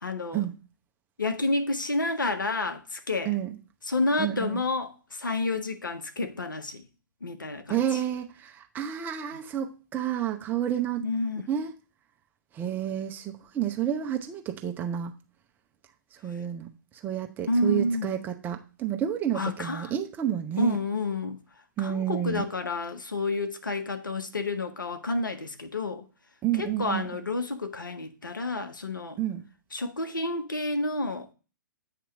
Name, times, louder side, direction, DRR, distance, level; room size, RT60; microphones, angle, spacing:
voice 1, 0.0-0.4 1.2-3.4 3.8-6.9 7.2-8.0 11.0-11.5 17.5-18.1 19.3-19.9 20.6-21.4 21.8-26.0 26.6-29.2 29.7-31.3, left 2 dB, 80° left, 0.9 m, -30 dB
voice 2, 3.3-3.6 4.2-4.6 7.7-11.1 11.5-11.7 12.5-15.1 16.2-16.7 17.0-20.8 21.8-22.4 26.4-27.1 29.2-29.4, right 10 dB, 20° right, 0.7 m, -30 dB
8.3 x 3.0 x 6.0 m
figure-of-eight pair, 120°, 11 cm